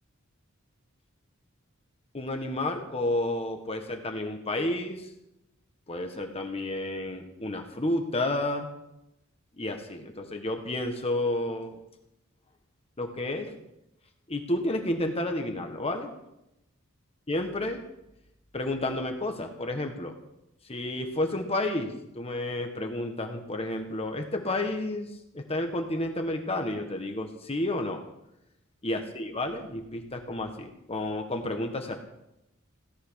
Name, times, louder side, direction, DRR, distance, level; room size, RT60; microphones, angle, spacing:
voice 1, 2.1-5.1 5.9-8.7 9.6-11.8 13.0-13.5 14.3-16.1 17.3-17.8 18.5-20.1 20.7-28.0 28.8-32.0, left 1 dB, 30° left, 4 dB, 1.6 m, -31 dB
17.5 x 11.0 x 6.5 m, 0.84 s
head